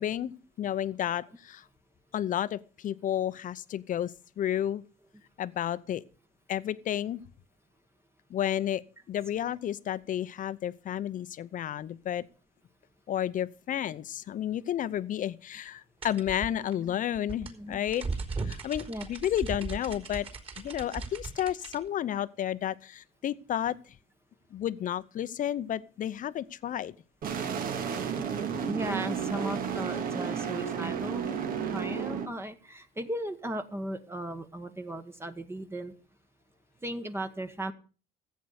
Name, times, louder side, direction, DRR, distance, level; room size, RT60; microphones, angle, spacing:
voice 1, 0.0-1.6 2.1-4.8 5.4-6.0 6.5-7.2 8.3-8.8 9.1-12.2 13.1-18.0 18.4-20.3 20.6-23.8 24.5-26.9, left 11 dB, 50° left, 0.8 m, -31 dB
sound 1, 16.0-21.8, right 4 dB, 35° right, 3.9 m, -37 dB
voice 2, 17.5-17.8 18.9-19.0 28.7-31.4 31.7-35.9 36.8-37.7, right 1 dB, 15° right, 1.3 m, -36 dB
sound 2, 27.2-32.3, right 7 dB, 60° right, 2.0 m, -32 dB
15.0 x 8.3 x 6.5 m
cardioid pair, 110°, 17 cm